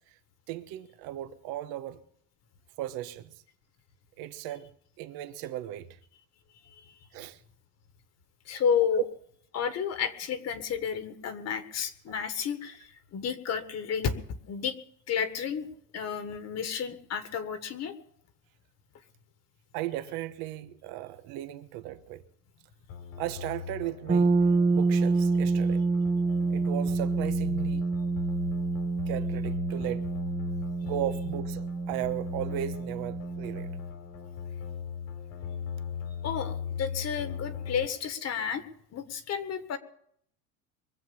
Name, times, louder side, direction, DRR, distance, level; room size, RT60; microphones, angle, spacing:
voice 1, 0.5-2.0 2.8-3.3 4.2-4.7 5.0-6.0 7.1-7.4 8.9-9.0 19.7-22.2 23.2-24.3 24.7-25.8 26.5-27.9 29.1-30.0 30.8-33.8, right 13 dB, 65° right, 1.2 m, -36 dB
voice 2, 8.5-9.0 9.5-14.2 14.5-14.8 15.1-15.7 15.9-17.9 36.2-38.6 38.9-39.8, left 7 dB, 40° left, 1.6 m, -31 dB
sound 1, 22.9-37.9, left 7 dB, 85° left, 3.7 m, -39 dB
sound 2, 24.1-33.9, right 4 dB, 15° right, 0.9 m, -28 dB
23.0 x 7.8 x 7.0 m
cardioid pair, 140°, 38 cm